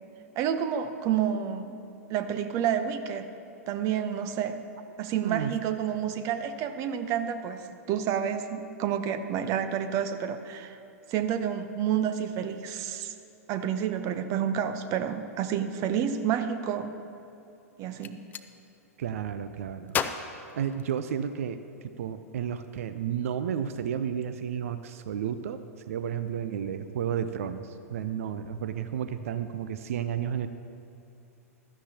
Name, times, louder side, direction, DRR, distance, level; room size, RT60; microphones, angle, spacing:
voice 1, 0.4-1.7 2.1-3.3 3.7-4.6 5.0-10.8 11.1-13.1 13.5-16.9 17.8-18.2, right 9 dB, 40° right, 10 dB, 0.8 m, -29 dB
voice 2, 5.2-5.5 19.0-20.0 20.5-21.6 22.0-30.5, right 8 dB, 60° right, 11 dB, 0.5 m, -32 dB
Gunshot gunfire, 17.8-18.5 19.9-21.4, left 7 dB, 20° left, 0.5 m, -34 dB
16.0 x 12.5 x 2.9 m, 2.6 s
figure-of-eight pair, 100°, 8 cm